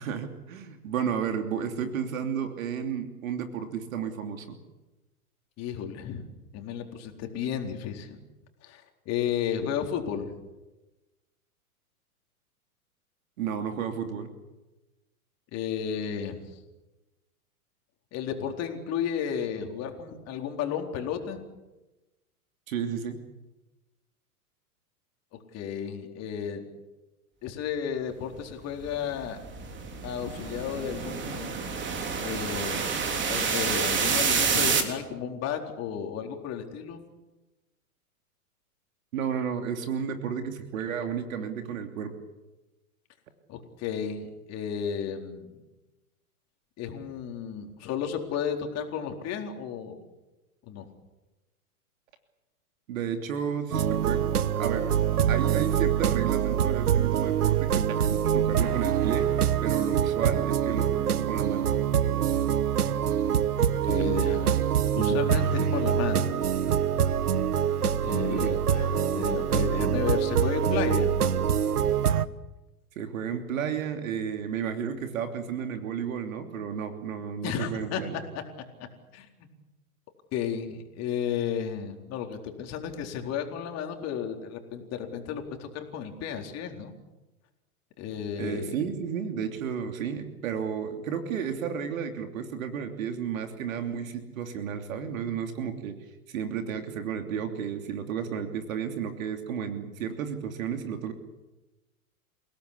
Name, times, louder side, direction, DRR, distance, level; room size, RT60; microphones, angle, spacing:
voice 1, 0.0-4.6 13.4-14.3 22.7-23.2 39.1-42.1 52.9-54.2 54.6-54.9 55.3-59.3 59.6-61.7 68.3-68.6 72.9-78.1 88.4-96.0 96.3-101.1, right 7 dB, 60° right, 6 dB, 3.1 m, -32 dB
voice 2, 5.6-6.2 6.5-8.2 8.6-10.3 15.5-16.4 18.1-21.4 25.5-26.6 27.4-29.4 30.0-31.5 32.2-33.0 33.3-37.0 43.5-45.5 46.8-50.0 50.7-50.8 63.6-64.6 64.9-66.4 67.8-71.1 77.4-78.0 79.1-79.3 80.3-86.9 88.0-88.8, left 8 dB, 35° left, 4 dB, 4.2 m, -33 dB
sound 1, 28.8-34.8, right 6 dB, 25° right, 3.6 m, -28 dB
sound 2, 53.7-72.3, right 9 dB, 80° right, 1.2 m, -25 dB
28.5 x 18.0 x 8.5 m, 1.1 s
hypercardioid pair, 110°, 45 cm